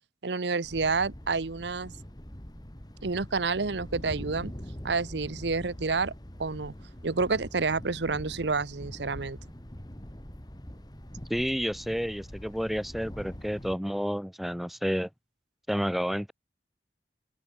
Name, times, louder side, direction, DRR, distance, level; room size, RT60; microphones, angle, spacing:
voice 1, 0.2-1.9 3.0-4.5 4.8-6.1 6.4-6.7 7.0-9.4, right 4 dB, 75° right, 0.9 m, -29 dB
Thunder, 0.6-13.7, equal, 20° left, 2.0 m, -43 dB
voice 2, 11.3-15.1 15.7-16.3, equal, ahead, 0.7 m, -30 dB
open air
head